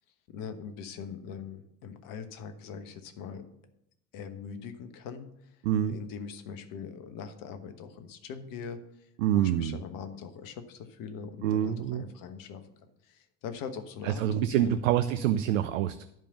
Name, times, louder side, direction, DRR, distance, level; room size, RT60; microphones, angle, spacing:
voice 1, 0.3-3.4 4.1-5.6 5.9-14.3 14.6-14.7, left 6 dB, 50° left, 9 dB, 1.3 m, -42 dB
voice 2, 5.6-6.0 9.2-9.8 11.4-12.0 14.0-16.0, right 11 dB, 65° right, 11 dB, 0.6 m, -26 dB
10.5 x 5.1 x 6.9 m, 0.79 s
figure-of-eight pair, 60°, 42 cm